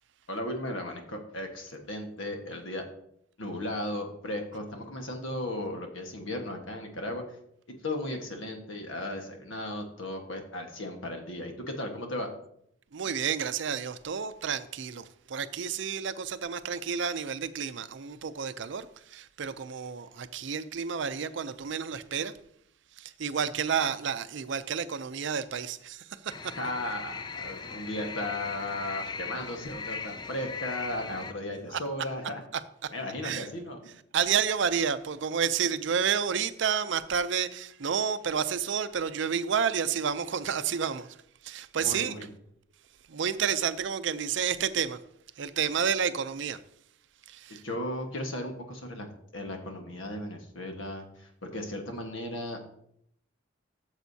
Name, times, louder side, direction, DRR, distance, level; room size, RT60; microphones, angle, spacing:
voice 1, 0.3-2.8 3.4-7.2 7.7-12.3 26.6-32.4 32.9-33.8 41.8-42.3 47.6-49.1 49.3-52.6, left 1 dB, 80° left, 1.4 m, -36 dB
voice 2, 12.9-22.3 23.0-26.5 31.7-31.8 32.8-32.9 33.2-33.5 34.1-41.2 41.4-42.1 43.1-45.0 45.4-46.6 47.3-47.6, right 7 dB, 65° right, 0.5 m, -30 dB
sound 1, 26.3-31.3, left 5 dB, 20° left, 0.3 m, -39 dB
12.5 x 7.2 x 2.7 m
head